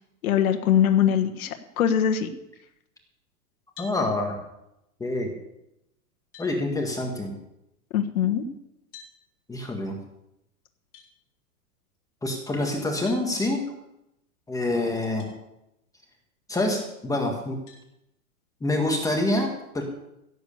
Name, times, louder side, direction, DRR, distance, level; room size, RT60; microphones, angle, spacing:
voice 1, 0.2-2.3 7.9-8.4, left 9 dB, 65° left, 5 dB, 1.5 m, -22 dB
sound 1, 3.8-4.0 5.7-5.8 6.3-6.5 8.9-9.2 10.9-11.1 13.1-13.3 15.2-15.3 16.0-16.1 17.7-17.9, left 6 dB, 35° left, 6.0 m, -46 dB
voice 2, 3.8-4.4 5.0-5.3 6.4-7.4 9.5-10.0 12.2-13.6 14.5-15.3 16.5-17.6 18.6-19.8, left 2 dB, 5° left, 2 dB, 1.7 m, -26 dB
16.5 x 8.1 x 6.9 m, 0.85 s
hypercardioid pair, 140°, 46 cm